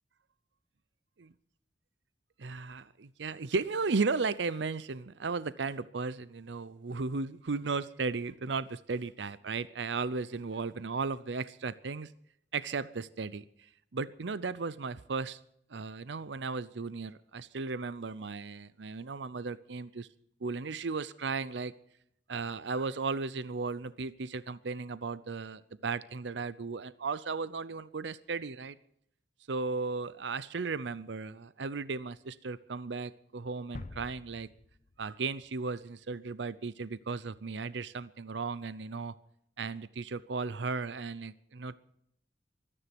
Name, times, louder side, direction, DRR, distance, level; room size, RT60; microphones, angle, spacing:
voice 1, 2.4-12.1 12.5-15.4 15.7-20.1 20.4-21.7 22.3-28.7 29.5-34.5 35.0-39.1 39.6-41.8, right 4 dB, 70° right, 16 dB, 0.6 m, -35 dB
sound 1, 33.7-35.6, left 2 dB, 40° left, 0.7 m, -47 dB
24.0 x 10.0 x 6.0 m, 0.71 s
head